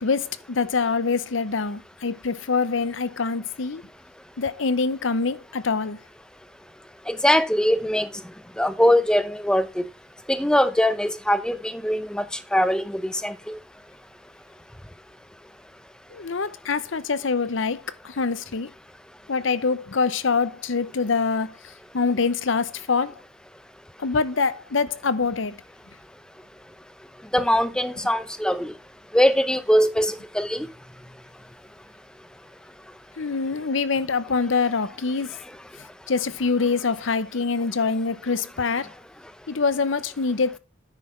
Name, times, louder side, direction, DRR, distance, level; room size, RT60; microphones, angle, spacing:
voice 1, 0.0-3.8 4.4-6.0 16.1-18.7 19.3-21.5 21.9-23.2 24.0-25.6 33.2-35.3 36.1-38.9 39.5-40.6, left 4 dB, 75° left, 0.7 m, -25 dB
voice 2, 7.1-8.1 8.6-9.8 10.3-12.2 12.5-13.6 27.3-28.7 29.1-30.7, equal, 5° left, 0.6 m, -21 dB
9.8 x 6.3 x 4.3 m
head